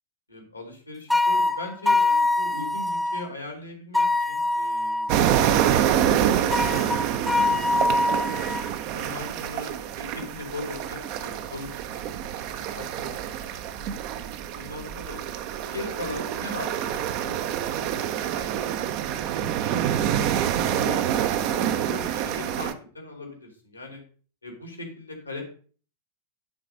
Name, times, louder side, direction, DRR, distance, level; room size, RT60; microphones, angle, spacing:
voice 1, 0.3-7.7 8.9-13.9 14.5-15.2 15.7-17.3 17.7-18.5 19.0-19.2 19.7-24.0 24.4-25.4, left 2 dB, 85° left, 3 dB, 2.4 m, -40 dB
sound 1, 1.1-3.2 3.9-5.2 6.5-8.7, left 2 dB, 5° left, 0.5 m, -24 dB
sound 2, 5.1-22.7, right 10 dB, 45° right, 0.7 m, -26 dB
9.7 x 4.2 x 5.3 m, 0.42 s
figure-of-eight pair, 90°, 0 cm